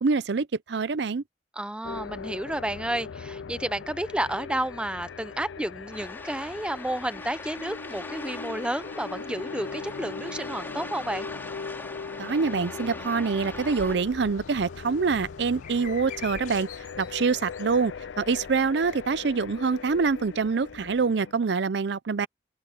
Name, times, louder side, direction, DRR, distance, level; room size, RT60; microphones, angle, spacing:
voice 1, 0.0-1.2 12.2-16.7 17.0-22.3, right 4 dB, 65° right, 0.5 m, -25 dB
voice 2, 1.5-11.3, right 1 dB, 5° right, 0.6 m, -31 dB
sound 1, 1.8-21.3, left 5 dB, 90° left, 0.5 m, -40 dB
sound 2, 5.9-14.0, left 2 dB, 10° left, 3.1 m, -41 dB
sound 3, 13.8-21.1, left 4 dB, 45° left, 5.2 m, -47 dB
open air
head